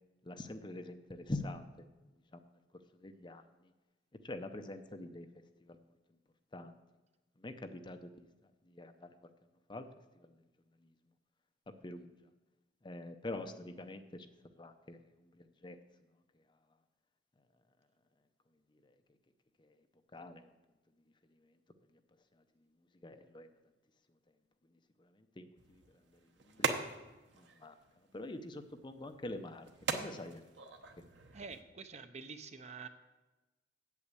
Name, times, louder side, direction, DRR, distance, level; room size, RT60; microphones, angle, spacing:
voice 1, 0.2-1.6 2.3-2.4 2.9-3.5 4.2-5.3 5.6-5.8 6.5-6.7 7.4-8.3 8.6-9.1 9.7-9.8 10.2-10.3 11.8-12.1 12.8-14.3 14.5-15.0 15.4-15.8 19.6-19.7 20.1-20.4 23.0-23.5 25.0-25.8 26.4-26.8 27.3-27.7 28.1-29.7 29.9-30.4, left 2 dB, 25° left, 7 dB, 0.6 m, -45 dB
sound 1, 25.6-31.6, right 4 dB, 80° right, 1.0 m, -42 dB
voice 2, 31.3-32.9, right 5 dB, 40° right, 9 dB, 0.7 m, -47 dB
8.4 x 7.3 x 8.3 m, 1.1 s
head